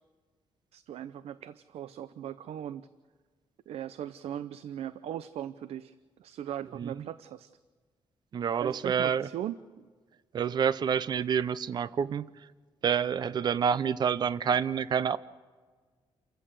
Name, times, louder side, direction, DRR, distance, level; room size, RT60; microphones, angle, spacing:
voice 1, 0.7-2.9 3.7-7.5 8.6-9.9, right 10 dB, 85° right, 14 dB, 0.6 m, -39 dB
voice 2, 8.3-9.3 10.3-12.3 12.8-15.2, right 7 dB, 45° right, 17 dB, 0.6 m, -28 dB
29.0 x 15.0 x 7.6 m, 1.5 s
cardioid pair, 140°, 10 cm